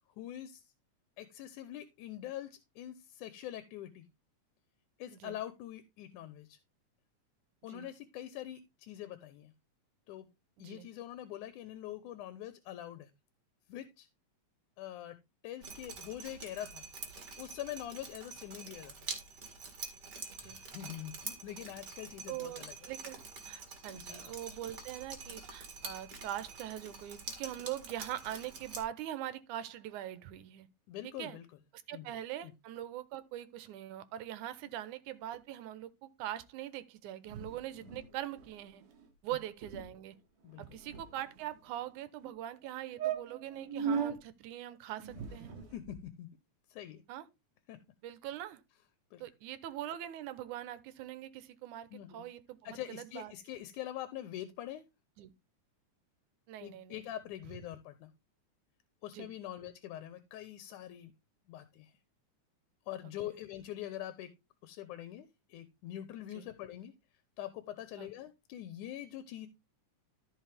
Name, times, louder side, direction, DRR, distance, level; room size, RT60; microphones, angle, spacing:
voice 1, 0.2-0.6 1.2-4.1 5.0-6.6 7.6-9.5 10.1-10.3 10.6-13.1 13.7-14.1 14.8-15.2 15.4-18.9 20.4-22.8 23.9-24.3 30.9-31.5 31.9-32.1 32.4-32.5 40.4-40.6 45.7-46.3 46.7-47.0 47.7-47.8 49.1-49.2 51.9-52.3 52.6-54.8 56.6-58.1 59.0-61.1 61.5-61.9 62.9-64.3 64.6-66.9 67.4-69.5, left 12 dB, 85° left, 2.3 m, -44 dB
Drip, 15.6-28.8, right 4 dB, 35° right, 2.5 m, -46 dB
voice 2, 22.3-30.7 31.0-31.4 31.7-38.8 39.2-40.1 40.6-45.6 47.1-47.2 48.0-48.6 49.2-53.3 55.2-55.3 56.5-57.0 59.1-59.3 63.2-63.3 66.3-66.5 68.0-68.1, right 12 dB, 85° right, 2.3 m, -42 dB
sound 1, 37.3-38.1 38.4-38.5 38.8-39.0 39.3-39.4 39.6-39.9 40.5-41.5 42.2-42.3 42.6-42.7 43.0-44.2 45.0-46.0, right 7 dB, 55° right, 2.0 m, -38 dB
13.5 x 5.3 x 3.4 m
omnidirectional pair, 3.4 m